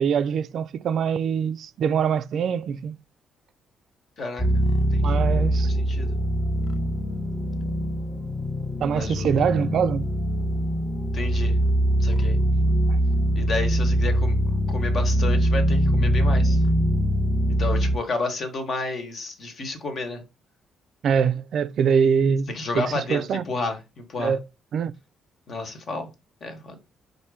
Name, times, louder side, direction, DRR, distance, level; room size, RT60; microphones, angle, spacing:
voice 1, 0.0-3.0 5.0-5.7 8.8-10.1 12.9-13.0 21.0-22.5 22.7-23.4 24.2-24.4 24.7-24.9, right 7 dB, 65° right, 0.3 m, -23 dB
voice 2, 4.2-4.6 4.9-5.2 5.6-6.2 8.9-9.3 11.1-11.5 12.0-12.4 13.4-14.4 14.7-16.6 17.6-20.2 22.5-24.4 25.5-26.1 26.4-26.7, left 3 dB, 55° left, 1.2 m, -31 dB
sound 1, 4.4-18.0, equal, 25° left, 0.7 m, -22 dB
4.2 x 2.6 x 4.7 m
cardioid pair, 90°, 0 cm